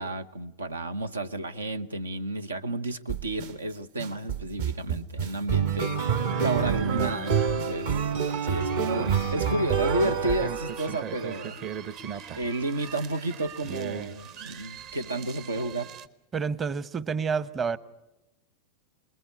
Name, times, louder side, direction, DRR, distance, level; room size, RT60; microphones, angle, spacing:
voice 1, 0.0-8.1 8.4-11.6 12.3-15.9, right 2 dB, 75° right, 1.0 m, -31 dB
sound 1, 3.1-3.5 4.0-11.2, right 7 dB, 60° right, 1.6 m, -27 dB
sound 2, 6.3-16.1, right 8 dB, 40° right, 1.1 m, -40 dB
voice 2, 16.3-17.8, right 5 dB, 20° right, 0.9 m, -28 dB
28.0 x 21.0 x 9.7 m
figure-of-eight pair, 90°, 0 cm